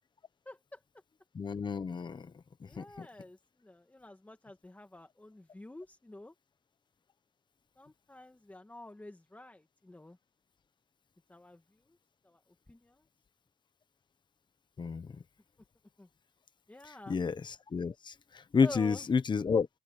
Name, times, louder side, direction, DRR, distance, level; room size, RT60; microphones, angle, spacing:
voice 1, 0.5-0.8 2.6-6.3 7.8-10.2 11.3-11.6 11.9-12.0 12.2-12.4 12.7-13.0 16.0-16.1 16.7-17.2 18.6-19.1, left 1 dB, 10° left, 2.3 m, -49 dB
voice 2, 1.3-2.3 2.8-3.1 14.8-15.1 17.1-18.1 18.5-19.7, left 5 dB, 25° left, 1.1 m, -30 dB
open air
cardioid pair, 110°, 17 cm